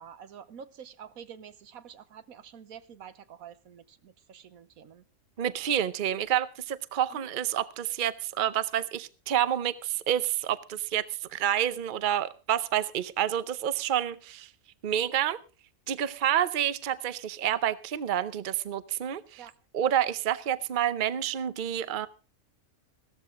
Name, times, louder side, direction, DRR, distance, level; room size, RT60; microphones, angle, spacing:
voice 1, 0.0-5.0 7.1-7.3 19.4-19.5, right 8 dB, 80° right, 1.4 m, -48 dB
voice 2, 5.4-14.5 14.8-15.4 15.9-19.4 19.7-22.1, right 10 dB, 45° right, 0.8 m, -28 dB
16.0 x 13.5 x 3.7 m
omnidirectional pair, 1.5 m